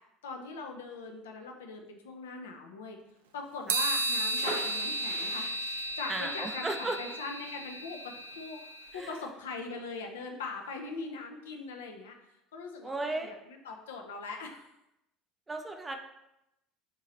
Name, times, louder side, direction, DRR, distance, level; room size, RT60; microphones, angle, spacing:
voice 1, 0.2-3.0 3.3-12.2 12.5-14.7, left 4 dB, 70° left, 3 dB, 0.6 m, -41 dB
sound 1, 3.7-9.0, right 2 dB, 70° right, 0.4 m, -34 dB
sound 2, 4.3-10.0 10.3-10.4 10.6-10.9, right 1 dB, 90° right, 1.5 m, -44 dB
voice 2, 6.1-7.0 8.9-9.2 12.8-13.3 15.5-16.0, right 2 dB, 15° right, 5 dB, 0.5 m, -35 dB
6.0 x 2.8 x 3.1 m, 0.87 s
figure-of-eight pair, 65°, 0 cm